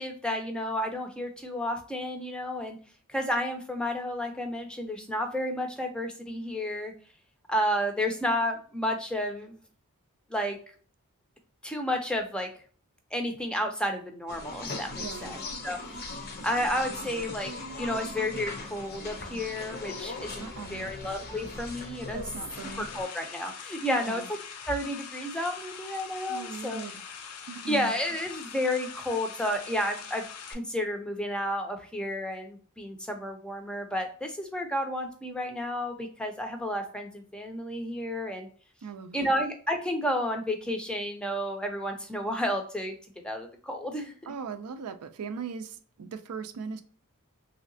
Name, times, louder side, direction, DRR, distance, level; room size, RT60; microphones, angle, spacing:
voice 1, 0.0-2.8 3.1-6.9 7.5-9.6 10.3-10.6 11.6-12.5 13.1-16.2 16.4-17.5 17.8-22.2 22.8-24.2 24.7-26.8 27.7-30.2 30.5-38.5 39.1-42.9 43.2-44.1, left 1 dB, 5° left, 4 dB, 0.5 m, -31 dB
sound 1, 14.3-23.0, left 2 dB, 45° left, 0.6 m, -39 dB
voice 2, 15.0-15.4 20.4-20.9 22.1-22.9 23.9-24.3 26.3-26.9 27.5-27.9 38.8-39.3 44.3-46.8, right 5 dB, 90° right, 9 dB, 0.4 m, -39 dB
sound 2, 22.5-30.5, left 7 dB, 85° left, 0.6 m, -43 dB
3.2 x 2.8 x 2.6 m, 0.42 s
head